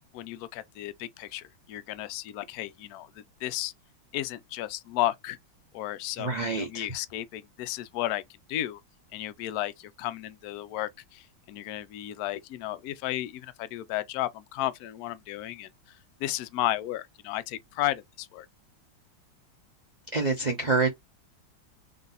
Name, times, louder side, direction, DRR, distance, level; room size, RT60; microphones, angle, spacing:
voice 1, 0.1-3.1 3.4-3.7 4.1-5.4 5.7-8.2 8.5-8.8 9.1-15.7 16.2-18.5, left 14 dB, 80° left, 0.8 m, -33 dB
voice 2, 6.2-6.9 20.1-20.9, right 4 dB, 60° right, 0.4 m, -26 dB
3.9 x 2.6 x 4.0 m
omnidirectional pair, 2.2 m